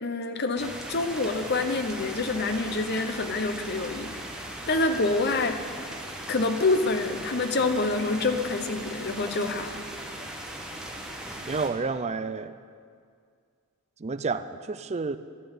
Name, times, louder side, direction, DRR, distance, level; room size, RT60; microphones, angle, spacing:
voice 1, 0.0-4.3 4.7-5.6 6.3-9.9, left 3 dB, 45° left, 8 dB, 0.9 m, -27 dB
sound 1, 0.6-11.7, right 1 dB, 5° right, 1.6 m, -38 dB
voice 2, 11.5-12.6 14.0-15.2, right 4 dB, 30° right, 12 dB, 0.4 m, -30 dB
12.5 x 10.0 x 8.0 m, 2.1 s
head